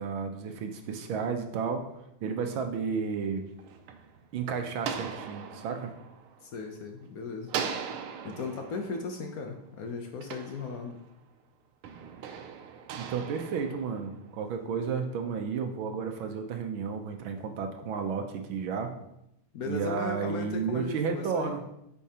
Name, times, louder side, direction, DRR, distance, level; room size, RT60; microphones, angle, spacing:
voice 1, 0.0-1.8 2.2-3.4 4.3-5.9 13.0-18.9 19.7-21.6, right 6 dB, 75° right, 5 dB, 1.4 m, -32 dB
sound 1, 3.3-7.0 7.5-11.2 11.8-14.5, right 7 dB, 90° right, 1.5 m, -40 dB
voice 2, 6.4-7.5 8.2-11.0 19.5-21.5, left 3 dB, 70° left, 3 dB, 0.8 m, -37 dB
8.3 x 5.5 x 2.8 m, 0.82 s
omnidirectional pair, 2.3 m